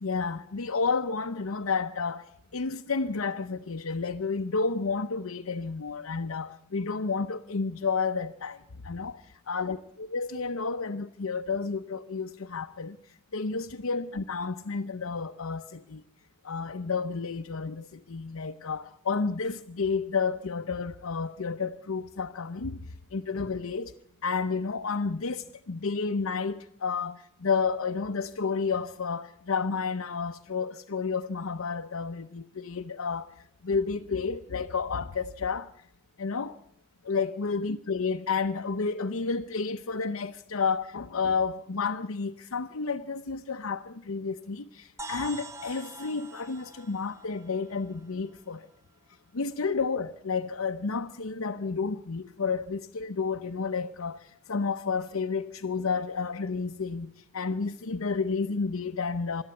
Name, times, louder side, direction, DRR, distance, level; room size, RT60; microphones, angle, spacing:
voice 1, 0.0-9.2 9.5-16.0 16.4-23.9 24.2-33.3 33.6-35.7 36.2-36.6 37.0-48.7 49.3-59.4, left 4 dB, 85° left, 0.7 m, -31 dB
sound 1, 45.0-48.7, right 2 dB, 15° right, 0.9 m, -45 dB
25.0 x 13.0 x 9.5 m
head